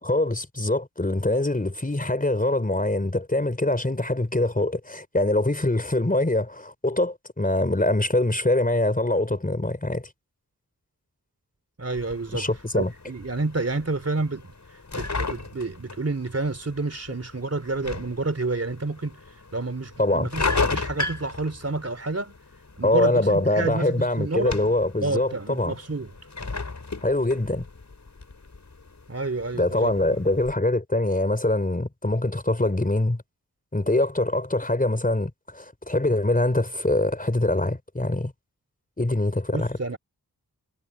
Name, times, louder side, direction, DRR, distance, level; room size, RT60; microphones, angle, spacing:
voice 1, 0.0-10.1 12.3-12.9 20.0-20.3 22.8-25.8 27.0-27.7 29.5-33.2 33.7-38.3 39.0-39.8, left 1 dB, 25° left, 4.4 m, -24 dB
voice 2, 11.8-12.5 12.7-14.5 14.9-19.2 19.5-22.4 22.8-24.6 25.0-26.1 29.1-30.2 39.5-40.0, right 3 dB, 40° right, 3.5 m, -29 dB
sound 1, 11.9-30.5, left 3 dB, 50° left, 5.2 m, -35 dB
cardioid pair, 45°, 37 cm